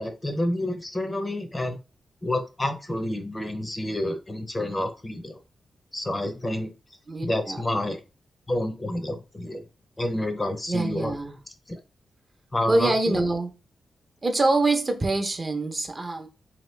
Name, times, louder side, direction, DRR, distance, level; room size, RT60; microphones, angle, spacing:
voice 1, 0.0-1.8 2.2-5.4 5.9-6.7 7.2-8.0 8.5-9.6 10.0-11.1 11.7-11.8 12.5-13.2, left 1 dB, 25° left, 0.7 m, -29 dB
voice 2, 7.1-7.6 10.7-11.4 12.7-13.5 14.2-16.3, right 2 dB, 35° right, 0.7 m, -25 dB
2.9 x 2.8 x 3.2 m
cardioid pair, 75°, 0 cm